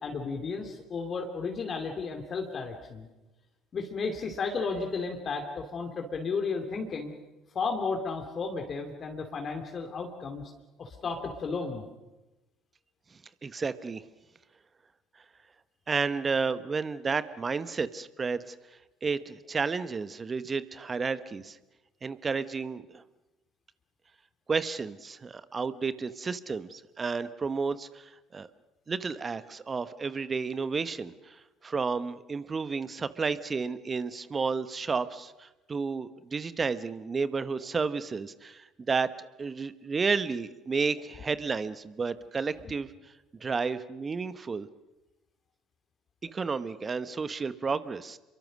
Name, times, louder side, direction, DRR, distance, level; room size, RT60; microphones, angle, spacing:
voice 1, 0.0-3.1 3.7-7.1 7.5-10.5 10.8-11.8, left 4 dB, 40° left, 3 dB, 2.7 m, -33 dB
voice 2, 13.4-14.0 15.9-18.5 19.0-21.6 22.0-23.0 24.5-28.0 28.3-28.5 28.9-31.4 31.6-39.1 39.4-42.9 43.4-44.7 46.2-48.2, right 4 dB, 30° right, 13 dB, 1.1 m, -31 dB
28.5 x 23.0 x 6.4 m, 1.0 s
hypercardioid pair, 60°, 0 cm